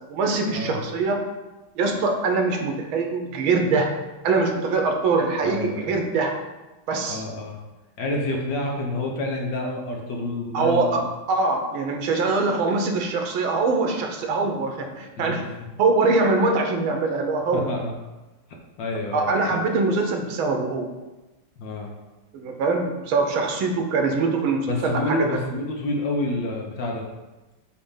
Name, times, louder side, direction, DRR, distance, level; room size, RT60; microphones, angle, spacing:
voice 1, 0.1-1.2 1.8-3.9 4.2-6.3 6.9-7.2 10.5-11.0 11.3-15.5 15.8-17.7 19.1-20.9 22.3-25.2, right 3 dB, 85° right, 4 dB, 1.7 m, -23 dB
voice 2, 5.4-6.1 7.1-7.6 8.0-11.1 15.2-15.4 17.5-17.9 18.8-19.6 21.6-21.9 24.7-27.0, left 1 dB, 70° left, 0 dB, 1.5 m, -28 dB
6.7 x 2.9 x 5.5 m, 1.1 s
omnidirectional pair, 2.2 m